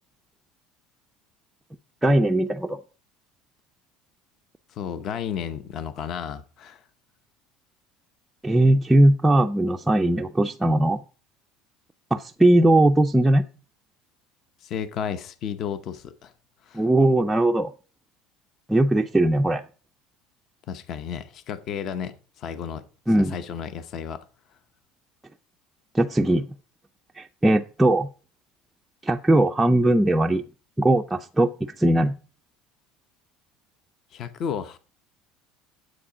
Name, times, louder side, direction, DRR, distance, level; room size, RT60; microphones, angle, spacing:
voice 1, 2.0-2.8 8.4-11.0 12.1-13.4 16.7-17.7 18.7-19.6 23.1-23.4 25.9-26.5 27.2-28.1 29.0-30.4 30.8-32.1, right 1 dB, 5° right, 0.4 m, -19 dB
voice 2, 4.7-6.8 14.6-16.3 16.7-16.8 20.7-22.8 23.2-24.2 34.1-34.8, left 8 dB, 40° left, 0.8 m, -33 dB
10.0 x 7.6 x 4.9 m
cardioid pair, 155°, 0 cm